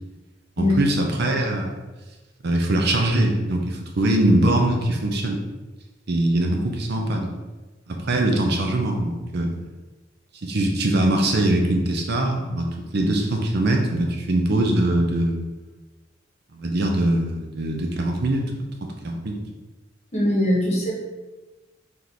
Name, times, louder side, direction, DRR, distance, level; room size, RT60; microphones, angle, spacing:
voice 1, 0.6-1.7 2.4-5.4 6.1-7.3 7.9-9.5 10.4-15.4 16.5-18.5 18.8-19.4, right 1 dB, 55° right, 2 dB, 0.6 m, -22 dB
voice 2, 20.1-20.9, left 1 dB, 35° left, -3 dB, 1.0 m, -21 dB
3.4 x 3.0 x 4.0 m, 1.2 s
head